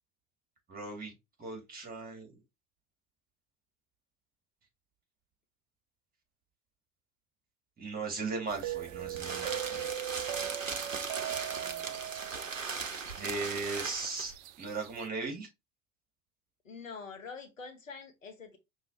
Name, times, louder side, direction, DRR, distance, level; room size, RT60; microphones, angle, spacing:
voice 1, 0.7-1.1 1.4-2.4 7.8-9.9 13.2-14.3 14.6-15.5, right 3 dB, 25° right, 2.3 m, -37 dB
sound 1, 8.5-15.1, right 12 dB, 40° right, 0.4 m, -40 dB
sound 2, 8.7-14.4, right 5 dB, 90° right, 0.5 m, -38 dB
voice 2, 11.6-12.0 16.6-18.6, left 5 dB, 85° left, 0.9 m, -46 dB
5.5 x 2.9 x 2.9 m
figure-of-eight pair, 65°, 38 cm